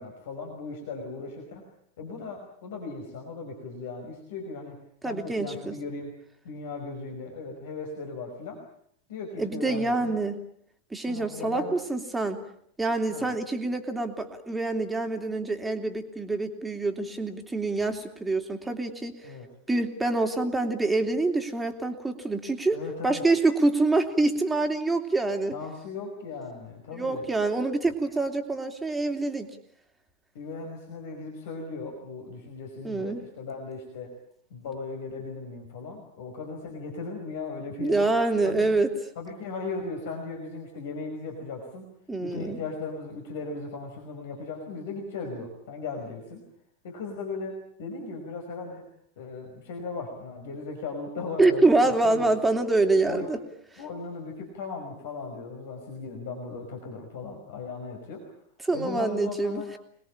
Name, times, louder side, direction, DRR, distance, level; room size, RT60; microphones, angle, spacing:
voice 1, 0.0-1.6 2.0-4.8 5.0-6.1 6.4-8.6 9.1-10.2 11.1-11.7 13.1-13.3 19.2-19.5 22.7-23.2 25.5-27.3 30.4-34.1 34.5-38.1 38.4-38.6 39.2-41.9 42.2-46.4 46.8-48.8 49.2-52.3 53.0-53.3 53.8-58.2 58.7-59.7, left 4 dB, 55° left, 2 dB, 5.2 m, -37 dB
voice 2, 5.0-5.7 9.4-10.4 10.9-12.4 12.8-19.1 19.7-22.8 23.0-25.5 26.9-29.5 32.8-33.2 37.8-38.9 42.1-42.6 51.4-53.4 58.6-59.8, right 2 dB, 10° right, 5 dB, 3.1 m, -26 dB
27.0 x 21.0 x 8.8 m, 0.69 s
figure-of-eight pair, 90°, 0 cm